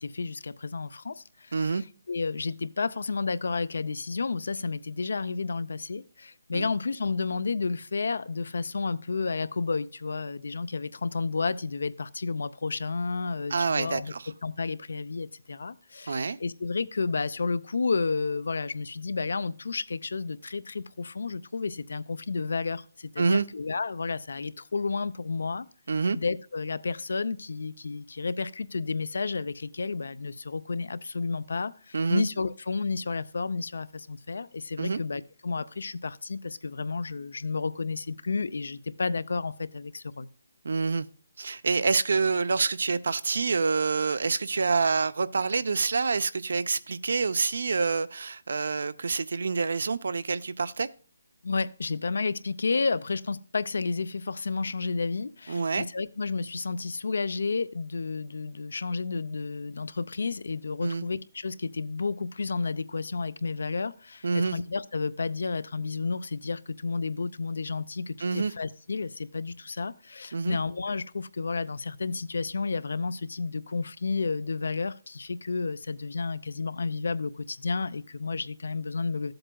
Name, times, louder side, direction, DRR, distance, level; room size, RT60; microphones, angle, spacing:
voice 1, 0.0-14.1 14.4-25.7 26.1-40.3 51.4-79.3, left 4 dB, 70° left, 0.5 m, -31 dB
voice 2, 1.5-1.8 6.5-6.7 13.5-14.3 16.1-16.4 23.2-23.5 25.9-26.2 31.9-32.2 34.8-35.0 40.6-41.1 41.4-50.9 55.5-55.9 60.8-61.1 64.2-64.6 68.2-68.5 70.3-70.6, right 4 dB, 65° right, 0.5 m, -27 dB
13.0 x 7.8 x 2.3 m
hypercardioid pair, 170°, 0 cm